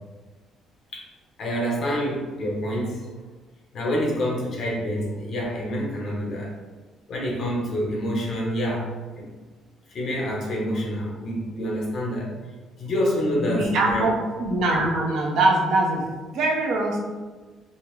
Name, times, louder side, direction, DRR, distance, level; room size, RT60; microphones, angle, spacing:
voice 1, 1.4-3.1 3.7-6.5 7.1-9.3 9.9-12.3 12.8-14.1, equal, 45° left, -3 dB, 0.8 m, -27 dB
voice 2, 13.3-14.1 14.4-16.1 16.3-17.0, right 2 dB, 65° right, 0 dB, 0.6 m, -22 dB
3.6 x 2.0 x 3.0 m, 1.4 s
cardioid pair, 150°, 0 cm